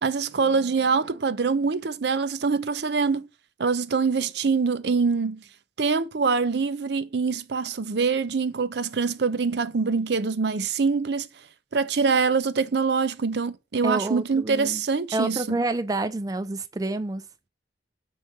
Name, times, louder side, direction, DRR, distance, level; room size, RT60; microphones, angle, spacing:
voice 1, 0.0-3.3 3.6-5.4 5.8-11.3 11.7-15.6, right 5 dB, 65° right, 0.6 m, -24 dB
voice 2, 13.8-14.8 15.1-17.2, right 2 dB, 20° right, 0.3 m, -28 dB
9.0 x 3.1 x 6.5 m
head